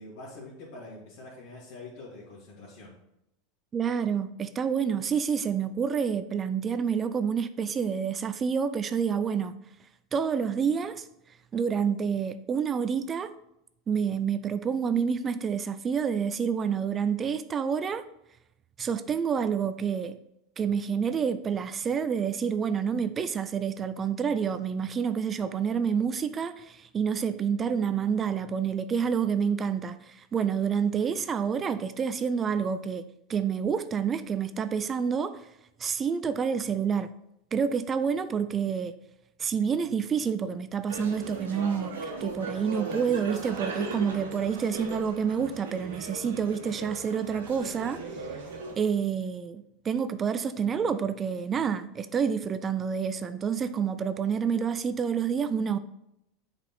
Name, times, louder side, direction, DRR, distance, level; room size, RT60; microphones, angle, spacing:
voice 1, 0.0-2.9, left 2 dB, 60° left, 2.5 m, -45 dB
voice 2, 3.7-9.6 10.1-11.1 11.5-13.3 13.9-18.0 18.8-20.2 20.6-33.0 33.3-35.5 35.8-37.1 37.5-38.9 39.4-48.3 48.8-55.8, right 7 dB, 30° right, 0.5 m, -28 dB
sound 1, 40.9-48.7, right 3 dB, 80° right, 1.5 m, -38 dB
7.2 x 5.2 x 4.3 m
hypercardioid pair, 90°, 0 cm